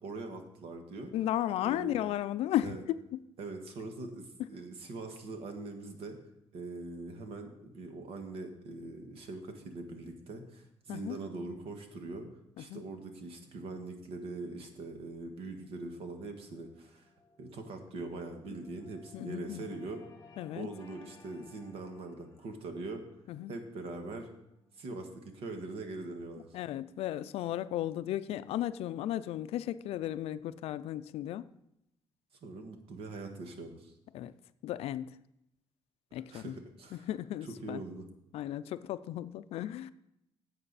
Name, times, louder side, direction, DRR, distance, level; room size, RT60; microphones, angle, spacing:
voice 1, 0.0-1.1 1.6-2.0 2.6-2.8 3.4-6.2 6.5-12.3 12.6-17.1 17.4-20.0 20.5-23.0 23.5-24.3 24.8-26.5 32.4-33.9 36.3-37.1 37.6-38.0, right 3 dB, 70° right, 1.6 m, -42 dB
voice 2, 1.1-3.2 10.9-11.2 12.6-12.8 19.1-19.8 20.4-20.7 23.3-23.5 26.5-31.5 34.1-34.3 34.6-35.2 36.1-36.5 36.9-37.8 38.3-39.9, left 12 dB, 80° left, 0.4 m, -35 dB
sound 1, 15.1-27.2, left 4 dB, 35° left, 1.3 m, -61 dB
11.0 x 7.9 x 4.1 m
cardioid pair, 140°, 10 cm